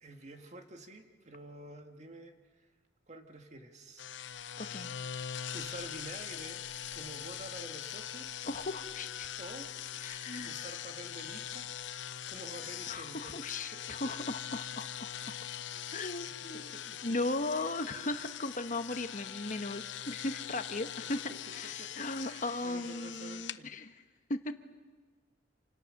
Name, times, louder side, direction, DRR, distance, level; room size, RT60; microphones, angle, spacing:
voice 1, 0.0-2.3 3.1-4.1 5.5-6.6 6.9-8.4 9.4-9.7 10.4-11.7 12.3-13.4 13.7-14.1 14.5-14.7 15.2-15.4 16.5-17.0 21.6-23.7, right 2 dB, 40° right, 5 dB, 1.9 m, -49 dB
sound 1, 4.0-23.6, left 10 dB, 90° left, 0.7 m, -42 dB
voice 2, 4.6-4.9 8.4-9.3 10.0-10.6 12.9-15.3 15.9-16.7 17.0-24.0 24.3-24.5, left 2 dB, 45° left, 8 dB, 1.1 m, -37 dB
27.5 x 27.0 x 6.5 m, 1.4 s
head